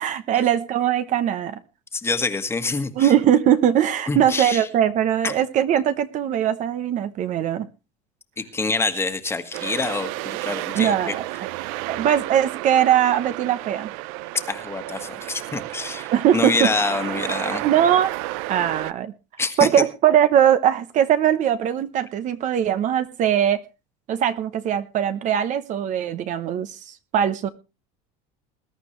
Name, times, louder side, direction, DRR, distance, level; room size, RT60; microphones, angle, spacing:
voice 1, 0.0-1.6 3.0-7.7 10.7-11.3 11.9-13.9 16.1-16.7 17.6-19.1 19.6-23.6 24.1-27.5, right 10 dB, 45° right, 11 dB, 0.9 m, -21 dB
voice 2, 1.9-3.1 4.1-4.6 5.2-5.4 8.4-11.1 14.5-17.6 19.4-19.7, left 3 dB, 15° left, 9 dB, 1.6 m, -26 dB
sound 1, 9.5-18.9, right 19 dB, 75° right, 0.6 m, -32 dB
20.5 x 11.0 x 3.2 m, 0.30 s
cardioid pair, 135°, 18 cm